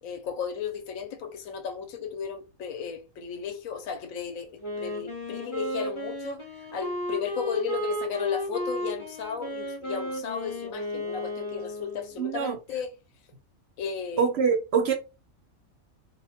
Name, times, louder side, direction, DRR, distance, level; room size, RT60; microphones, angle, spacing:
voice 1, 0.0-12.9 13.8-14.3, left 7 dB, 80° left, 1.0 m, -34 dB
Wind instrument woodwind instrument, 4.6-12.2, equal, 25° left, 0.7 m, -34 dB
voice 2, 12.2-12.6 14.2-14.9, right 6 dB, 60° right, 0.7 m, -24 dB
2.8 x 2.1 x 2.7 m
omnidirectional pair, 1.4 m